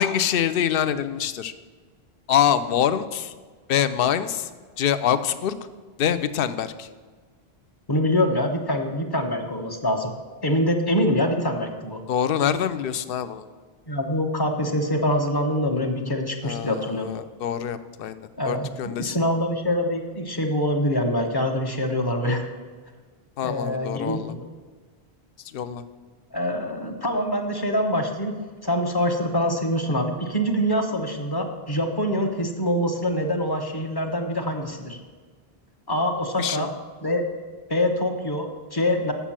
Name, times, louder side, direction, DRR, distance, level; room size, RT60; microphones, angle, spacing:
voice 1, 0.0-1.5 2.3-3.3 3.7-4.5 4.8-5.6 6.0-6.9 12.1-13.4 16.4-18.2 18.5-19.2 23.4-24.3 25.5-25.8 36.4-36.7, left 9 dB, 65° left, 13 dB, 0.7 m, -25 dB
voice 2, 7.9-10.1 10.4-12.0 13.9-17.1 18.4-22.4 23.4-24.4 26.3-28.3 28.6-35.0 35.9-36.7 37.0-37.2 37.7-39.1, equal, 25° left, 4 dB, 0.9 m, -25 dB
7.4 x 6.9 x 7.3 m, 1.5 s
omnidirectional pair, 1.1 m